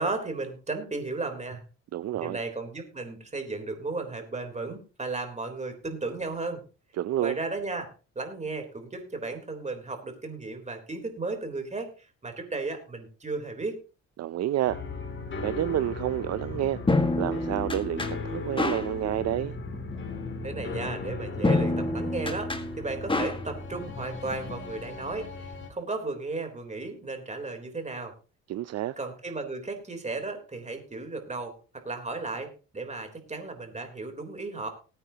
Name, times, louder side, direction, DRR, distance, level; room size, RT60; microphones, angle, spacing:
voice 1, 0.0-1.6 2.2-6.6 7.2-7.9 8.2-13.8 20.4-22.5 22.8-28.1 29.0-34.7, right 3 dB, 25° right, 3.6 m, -34 dB
voice 2, 1.9-2.4 7.0-7.4 14.2-14.8 15.4-16.8 17.2-19.6 28.5-29.0, right 13 dB, 55° right, 0.5 m, -29 dB
sound 1, 14.7-25.7, left 3 dB, 40° left, 2.9 m, -38 dB
sound 2, 16.5-24.6, left 2 dB, 15° left, 1.7 m, -30 dB
19.5 x 9.1 x 2.9 m
cardioid pair, 90°, 30 cm